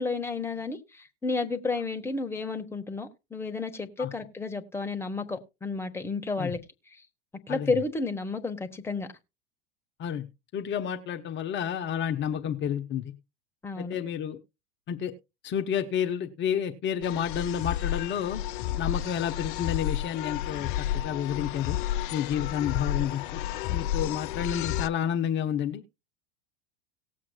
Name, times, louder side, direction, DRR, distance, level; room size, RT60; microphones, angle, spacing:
voice 1, 0.0-6.6 7.5-9.1 13.6-14.0, left 3 dB, 10° left, 1.2 m, -31 dB
voice 2, 10.5-13.1 13.8-14.4 14.9-15.1 15.4-18.4 18.8-21.8 22.1-23.4 23.7-26.0, left 9 dB, 35° left, 0.9 m, -30 dB
sound 1, 17.0-24.9, left 12 dB, 55° left, 0.5 m, -31 dB
18.5 x 7.5 x 2.3 m
figure-of-eight pair, 85°, 32 cm